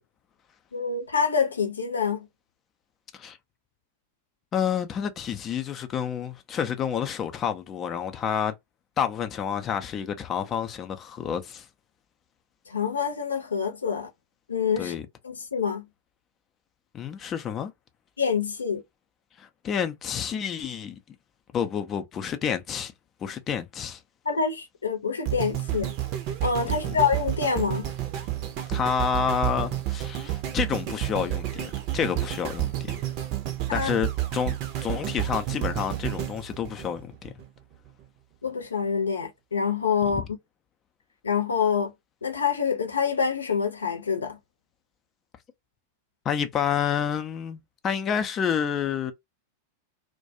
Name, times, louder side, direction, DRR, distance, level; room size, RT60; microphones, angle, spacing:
voice 1, 0.7-2.3 12.7-14.1 14.5-15.0 15.2-15.8 18.2-18.8 24.2-25.9 26.4-27.9 33.7-33.9 38.4-40.2 41.2-41.9 42.2-44.4, left 6 dB, 75° left, 0.7 m, -26 dB
voice 2, 4.5-8.5 9.0-11.6 14.8-15.0 16.9-17.7 19.4-20.9 21.5-22.9 23.2-24.0 26.7-27.0 28.7-33.0 33.7-34.5 34.8-37.3 40.1-40.2 46.2-49.1, left 8 dB, 25° left, 0.5 m, -29 dB
sound 1, 25.3-37.5 38.0-38.1, right 14 dB, 45° right, 0.6 m, -30 dB
2.3 x 2.2 x 2.6 m
figure-of-eight pair, 90°, 0 cm